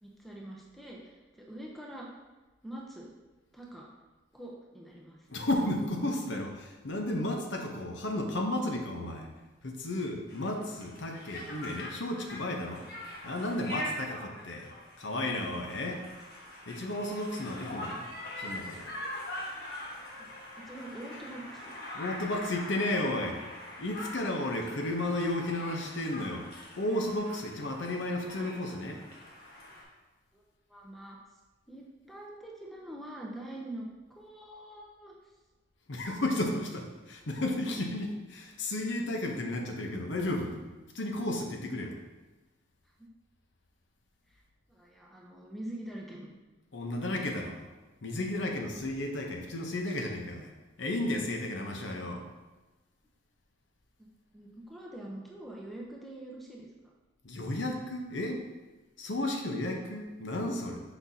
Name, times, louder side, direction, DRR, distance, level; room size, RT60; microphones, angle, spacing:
voice 1, 0.0-2.1 2.6-3.1 3.5-3.9 4.3-5.3 20.2-20.3 20.7-21.8 30.3-30.4 30.7-31.2 31.7-33.9 34.2-35.3 44.3-44.4 44.7-46.3 54.0-54.1 54.3-56.7, right 1 dB, ahead, -2 dB, 0.7 m, -44 dB
voice 2, 5.3-9.3 9.6-12.8 13.2-14.7 15.0-16.0 16.7-18.1 18.4-18.9 21.9-23.4 23.8-26.5 26.8-29.0 35.9-40.6 40.9-41.9 46.7-47.7 48.0-50.5 50.8-52.2 57.2-58.4 59.0-60.8, left 1 dB, 75° left, 2 dB, 0.8 m, -33 dB
Conversation, 10.3-29.8, left 1 dB, 50° left, 1.3 m, -43 dB
6.0 x 6.0 x 2.8 m, 1.1 s
head